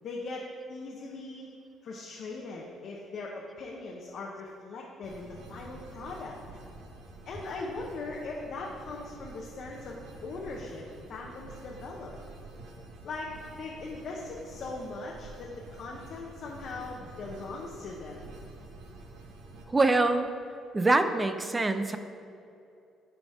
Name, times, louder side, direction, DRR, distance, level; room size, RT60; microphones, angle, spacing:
voice 1, 0.0-1.5 1.8-6.3 7.2-10.8 11.1-12.1 13.0-18.2, left 3 dB, 60° left, -2 dB, 0.9 m, -40 dB
sound 1, 5.0-19.7, right 2 dB, 75° right, 1.1 m, -48 dB
voice 2, 19.7-20.3 20.7-22.0, right 2 dB, 20° right, 9 dB, 0.5 m, -24 dB
10.0 x 4.0 x 4.8 m, 2.6 s
cardioid pair, 90°, 0 cm